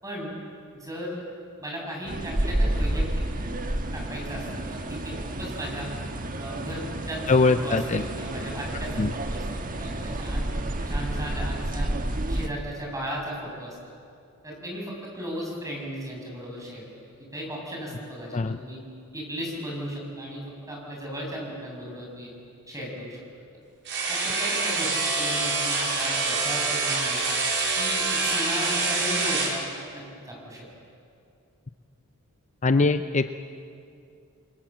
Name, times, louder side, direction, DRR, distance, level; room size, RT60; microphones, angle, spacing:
voice 1, 0.0-0.3 0.7-1.2 1.6-3.0 3.9-5.9 6.4-11.9 12.3-13.8 14.4-16.9 17.2-18.8 19.1-22.3 22.7-23.2 24.1-27.2 27.8-29.6 29.9-30.6, equal, 15° right, -2 dB, 6.9 m, -36 dB
sound 1, 2.1-12.5, right 1 dB, 40° right, 1.5 m, -30 dB
voice 2, 7.3-8.0 9.0-9.1 18.3-18.6 32.6-33.3, left 3 dB, 30° left, 9 dB, 0.6 m, -22 dB
sound 2, 23.9-29.6, right 3 dB, 55° right, 5.0 m, -26 dB
28.5 x 23.0 x 7.5 m, 2.5 s
head